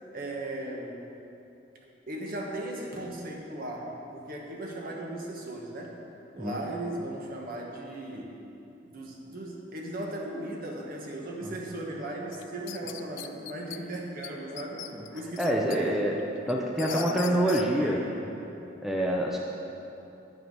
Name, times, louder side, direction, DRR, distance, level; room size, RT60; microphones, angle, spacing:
voice 1, 0.1-1.0 2.1-6.0 6.3-8.4 8.8-14.8 15.1-16.0 16.7-18.3, right 1 dB, 50° right, -1 dB, 1.4 m, -37 dB
sound 1, 12.3-13.8 14.2-14.3 14.6-15.8 16.2-17.7, left 13 dB, 85° left, 0.4 m, -40 dB
voice 2, 15.4-16.2 16.5-18.0 18.8-19.4, equal, ahead, -1 dB, 0.6 m, -26 dB
10.5 x 6.9 x 5.5 m, 2.9 s
head